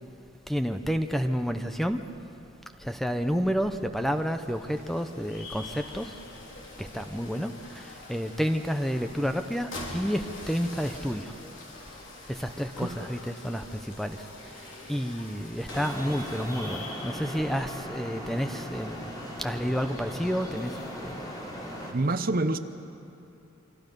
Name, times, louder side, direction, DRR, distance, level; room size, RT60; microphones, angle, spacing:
voice 1, 0.5-2.0 2.8-6.1 6.8-11.3 12.3-21.2, equal, ahead, 7 dB, 0.6 m, -30 dB
sound 1, 3.8-17.9, left 2 dB, 65° left, 3.7 m, -44 dB
Traffic noise roadway noise, 15.7-21.9, equal, 20° left, 3.0 m, -38 dB
voice 2, 21.9-22.6, right 2 dB, 45° right, 11 dB, 0.8 m, -26 dB
27.5 x 24.5 x 5.3 m, 2.8 s
head